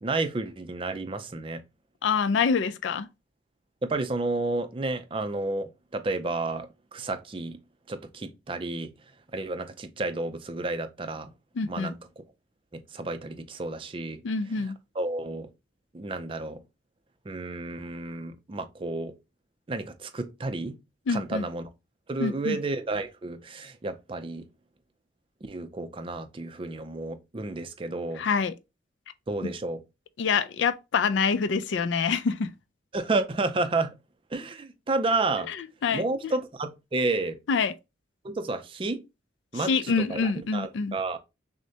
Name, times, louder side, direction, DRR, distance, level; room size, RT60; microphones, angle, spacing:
voice 1, 0.0-1.6 3.8-7.6 7.9-8.9 9.3-11.3 11.7-11.9 12.7-14.2 15.0-15.5 15.9-16.6 17.3-19.1 19.7-20.7 21.1-21.7 22.1-24.5 25.5-28.2 29.3-29.8 32.9-33.9 34.3-35.5 35.9-37.4 38.2-39.0 39.5-41.2, right 3 dB, 30° right, 0.4 m, -31 dB
voice 2, 2.0-3.1 11.6-11.9 14.2-14.8 21.1-21.4 22.2-22.6 28.2-28.5 30.2-32.5 35.5-36.0 37.5-37.7 39.5-41.0, left 5 dB, 70° left, 0.4 m, -26 dB
6.3 x 2.1 x 2.7 m
head